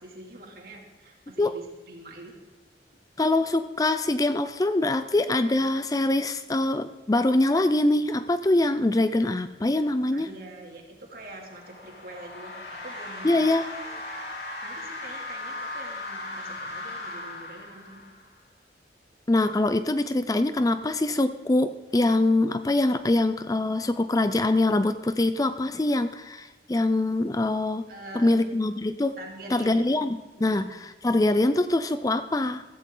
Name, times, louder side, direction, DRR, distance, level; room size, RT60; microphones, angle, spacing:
voice 1, 0.0-2.4 10.1-13.4 13.8-14.0 14.6-18.0 27.9-28.4 29.2-29.9 30.4-30.7, right 2 dB, 55° right, 0 dB, 2.9 m, -44 dB
voice 2, 3.2-10.3 13.2-13.7 19.3-27.8 28.1-29.2 29.5-32.6, left 2 dB, 20° left, 11 dB, 0.4 m, -24 dB
sound 1, 11.3-18.3, left 2 dB, 60° left, 3.4 m, -38 dB
15.5 x 14.5 x 3.9 m, 1.1 s
head